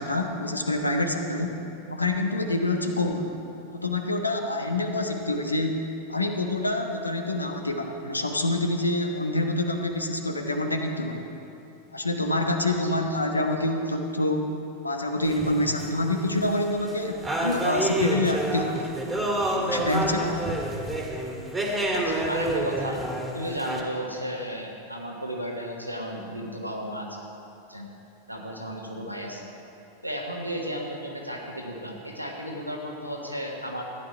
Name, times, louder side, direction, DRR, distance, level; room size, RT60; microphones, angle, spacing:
voice 1, 0.0-1.6 1.9-3.3 3.7-5.8 6.1-11.3 11.9-14.5 14.8-18.9 19.5-20.4, left 2 dB, 80° left, 4 dB, 1.0 m, -27 dB
voice 2, 12.7-13.1 21.9-23.0 23.3-27.2 27.7-27.9 28.3-29.5 30.0-33.8, equal, 90° right, -1 dB, 1.6 m, -34 dB
sound 1, 15.2-16.5 16.9-17.0 17.2-23.8, right 1 dB, 10° right, 1.8 m, -28 dB
15.0 x 10.5 x 4.7 m, 2.8 s
figure-of-eight pair, 90°, 0 cm